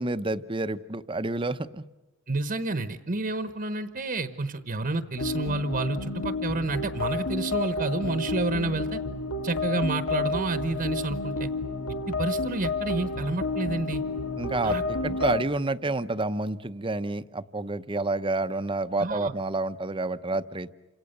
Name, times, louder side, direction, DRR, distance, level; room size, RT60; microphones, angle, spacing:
voice 1, 0.0-1.8 14.4-20.7, right 2 dB, 25° right, 12 dB, 0.8 m, -29 dB
voice 2, 2.3-9.0 9.4-11.5 12.1-14.0 14.6-15.2 19.0-19.3, right 2 dB, 40° right, 10 dB, 1.1 m, -29 dB
sound 1, 5.2-15.4, left 3 dB, 85° left, 1.8 m, -31 dB
29.0 x 27.0 x 6.7 m, 1.1 s
head